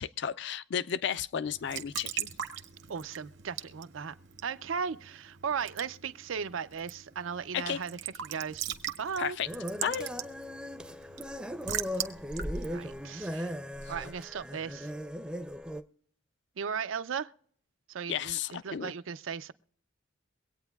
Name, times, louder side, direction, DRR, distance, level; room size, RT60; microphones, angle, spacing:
voice 1, 0.0-2.3 7.5-7.8 9.2-9.5 9.8-10.1 13.8-13.9 18.1-18.9, left 8 dB, 65° left, 0.4 m, -33 dB
Raindrop / Drip / Trickle dribble, 1.4-13.9, right 10 dB, 65° right, 0.8 m, -41 dB
voice 2, 2.9-4.1 4.4-8.7 9.0-9.4 12.6-13.5 13.9-14.9 16.6-17.3 17.9-19.5, right 6 dB, 90° right, 0.5 m, -36 dB
sound 1, 9.4-15.8, equal, 5° right, 0.5 m, -38 dB
24.0 x 8.8 x 2.3 m
head